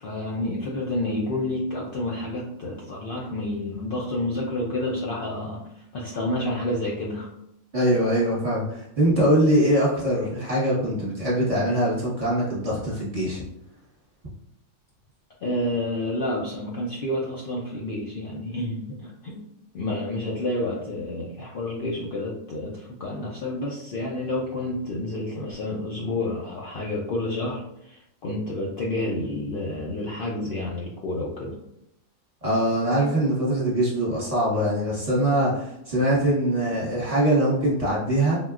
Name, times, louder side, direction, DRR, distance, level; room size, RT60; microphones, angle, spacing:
voice 1, 0.0-7.3 15.4-19.4 19.7-31.6, left 1 dB, 85° left, -3 dB, 0.4 m, -29 dB
voice 2, 7.7-13.4 32.4-38.4, right 1 dB, 30° right, -7 dB, 0.9 m, -22 dB
3.7 x 2.1 x 2.4 m, 0.79 s
omnidirectional pair, 1.5 m